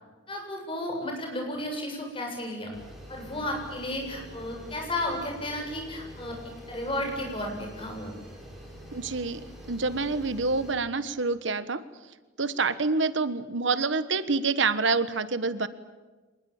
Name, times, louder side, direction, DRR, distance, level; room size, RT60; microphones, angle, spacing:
voice 1, 0.3-2.8 3.1-6.4 6.7-8.1, left 1 dB, 30° left, 2 dB, 7.4 m, -33 dB
sound 1, 2.7-10.7, equal, ahead, 7.5 m, -45 dB
voice 2, 8.9-11.8 12.4-15.7, right 4 dB, 70° right, 13 dB, 1.3 m, -27 dB
26.0 x 20.5 x 8.7 m, 1.2 s
head